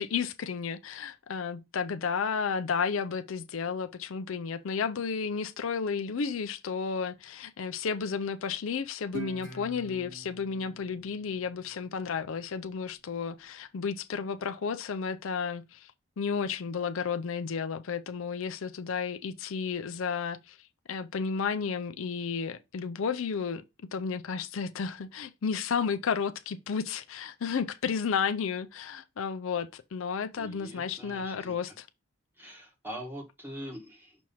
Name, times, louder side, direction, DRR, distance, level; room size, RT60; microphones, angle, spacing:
voice 1, 0.0-15.9 16.2-20.6 20.9-23.6 23.9-31.9, left 6 dB, 65° left, 0.5 m, -32 dB
Guitar, 9.1-12.3, right 2 dB, 55° right, 3.1 m, -45 dB
voice 2, 30.4-31.6 32.4-34.2, equal, 10° right, 1.5 m, -43 dB
6.1 x 3.0 x 5.5 m
head